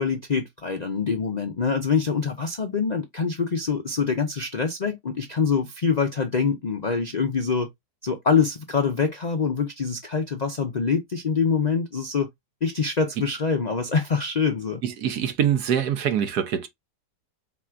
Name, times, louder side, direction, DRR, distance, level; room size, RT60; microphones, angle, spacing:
voice 1, 0.0-7.7 8.0-12.3 12.6-14.8, left 5 dB, 60° left, 0.4 m, -25 dB
voice 2, 14.8-16.7, right 9 dB, 75° right, 1.4 m, -24 dB
4.4 x 4.2 x 2.3 m
omnidirectional pair, 1.7 m